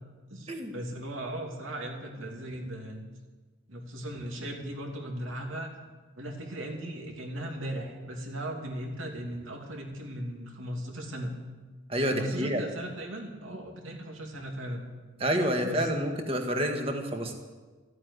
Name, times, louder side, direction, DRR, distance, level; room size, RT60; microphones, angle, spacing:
voice 1, 0.3-3.0 3.7-5.7 6.2-11.3 12.1-14.9 15.6-16.2, right 1 dB, 80° right, 1 dB, 2.8 m, -37 dB
voice 2, 11.9-12.6 15.2-17.3, equal, 30° right, 4 dB, 1.6 m, -28 dB
14.5 x 8.7 x 9.7 m, 1.3 s
head